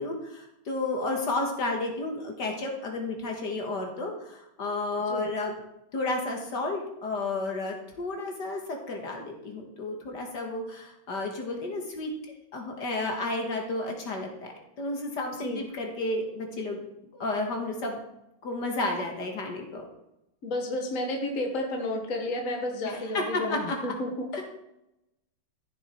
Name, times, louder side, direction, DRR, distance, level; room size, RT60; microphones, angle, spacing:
voice 1, 0.0-5.5 5.9-12.1 12.5-16.8 17.1-18.0 18.4-19.9 22.8-23.9 24.3-24.4, left 2 dB, 65° left, 2 dB, 2.3 m, -32 dB
voice 2, 20.4-24.3, left 1 dB, 45° left, 1 dB, 1.8 m, -31 dB
14.5 x 6.8 x 4.6 m, 0.86 s
omnidirectional pair, 2.0 m